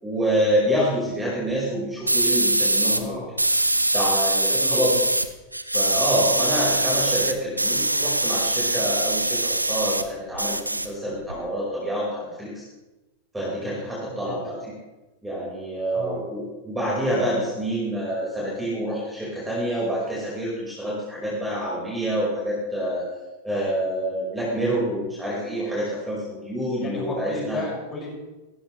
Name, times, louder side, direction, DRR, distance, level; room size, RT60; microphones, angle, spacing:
voice 1, 0.0-3.2 3.9-5.0 5.7-10.6 10.8-12.6 13.3-14.7 15.2-23.0 23.4-27.6, equal, 5° right, -7 dB, 5.0 m, -27 dB
sound 1, 2.1-3.0 3.4-5.3 5.5-10.0 10.3-11.3, right 1 dB, 85° right, 0.7 m, -22 dB
voice 2, 2.8-3.3 4.5-5.0 14.0-14.5 15.9-16.2 26.8-28.1, left 2 dB, 20° left, -3 dB, 6.1 m, -34 dB
16.0 x 15.0 x 3.3 m, 1.1 s
figure-of-eight pair, 90°, 0 cm